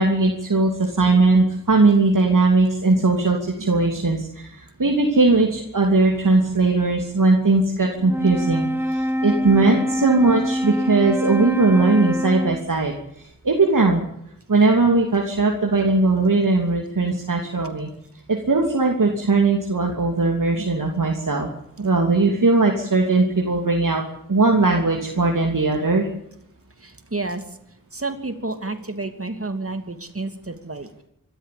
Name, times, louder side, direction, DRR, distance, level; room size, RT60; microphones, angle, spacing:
voice 1, 0.0-14.0 14.5-17.9 18.3-21.5 21.8-24.0 24.3-26.1, right 3 dB, 75° right, 1 dB, 3.0 m, -19 dB
Wind instrument woodwind instrument, 8.0-12.8, equal, 5° right, 1.3 m, -24 dB
voice 2, 26.8-27.6 27.9-31.0, right 2 dB, 45° right, 8 dB, 2.9 m, -30 dB
25.5 x 14.0 x 8.6 m, 0.77 s
wide cardioid pair, 65°, 32 cm